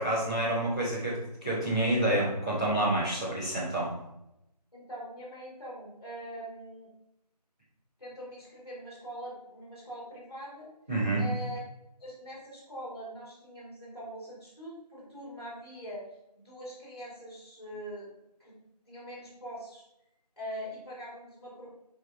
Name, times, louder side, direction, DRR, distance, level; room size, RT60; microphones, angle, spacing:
voice 1, 0.0-3.9 10.9-11.3, right 1 dB, 10° right, -14 dB, 1.3 m, -28 dB
voice 2, 4.7-6.9 8.0-10.7 11.2-11.6 12.0-16.0 16.3-18.1 18.4-18.5 18.9-19.8 20.4-21.7, equal, 35° left, -4 dB, 2.4 m, -42 dB
4.6 x 4.6 x 4.7 m, 0.85 s
figure-of-eight pair, 175°, 21 cm